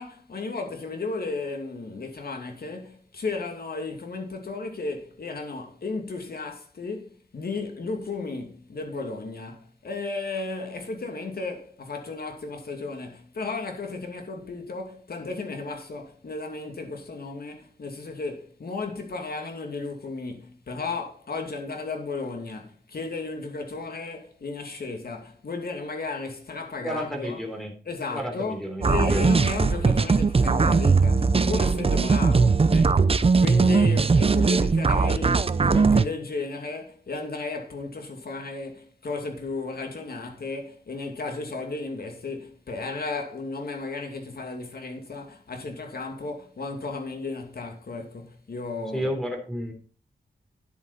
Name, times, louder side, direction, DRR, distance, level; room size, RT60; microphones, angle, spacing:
voice 1, 0.0-27.5 27.9-49.1, left 3 dB, 65° left, 2.5 m, -34 dB
voice 2, 26.8-27.7 28.1-29.4 48.9-49.7, equal, ahead, 3.4 m, -31 dB
sound 1, 28.8-36.1, right 4 dB, 35° right, 0.6 m, -20 dB
10.5 x 8.7 x 4.1 m
wide cardioid pair, 95°, 17 cm